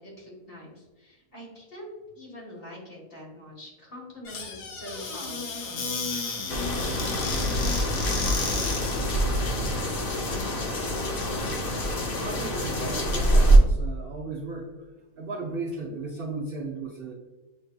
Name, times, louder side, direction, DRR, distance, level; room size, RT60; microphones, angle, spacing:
voice 1, 0.0-5.9, equal, 40° left, -4 dB, 1.6 m, -44 dB
Squeak / Cupboard open or close, 4.2-9.1, left 4 dB, 85° left, 1.4 m, -33 dB
sound 1, 6.5-13.6, right 1 dB, 55° left, 0.6 m, -25 dB
voice 2, 12.2-14.7 15.2-17.1, right 3 dB, 60° right, -3 dB, 0.6 m, -35 dB
7.6 x 2.7 x 2.2 m, 1.2 s
omnidirectional pair, 1.7 m